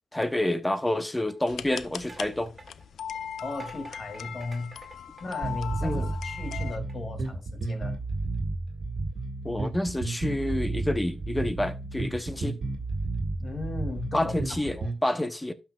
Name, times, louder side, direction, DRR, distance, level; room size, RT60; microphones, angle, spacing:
voice 1, 0.1-2.5 5.8-6.1 9.4-12.6 14.1-15.5, left 1 dB, 10° left, 0.9 m, -28 dB
sound 1, 1.3-6.1 6.7-7.0, right 3 dB, 30° right, 2.3 m, -50 dB
sound 2, 1.5-6.8, left 8 dB, 75° left, 0.4 m, -39 dB
voice 2, 3.4-4.8 5.2-8.0 13.4-14.3 14.7-14.9, left 2 dB, 40° left, 2.3 m, -36 dB
sound 3, 5.4-15.0, right 3 dB, 60° right, 1.8 m, -32 dB
12.0 x 5.8 x 2.3 m
cardioid pair, 70°, 0 cm